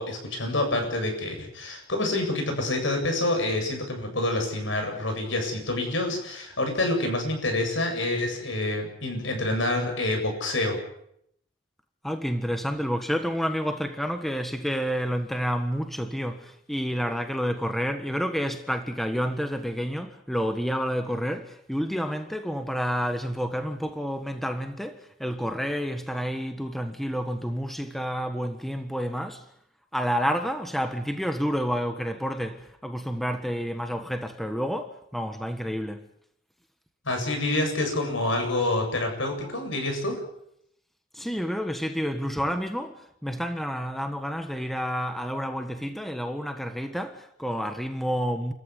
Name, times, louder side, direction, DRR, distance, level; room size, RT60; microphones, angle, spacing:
voice 1, 0.0-10.8 37.0-40.2, left 2 dB, 80° left, 7.9 m, -27 dB
voice 2, 12.0-29.4 29.9-36.0 41.1-48.5, equal, ahead, 1.4 m, -29 dB
29.5 x 15.0 x 9.8 m
head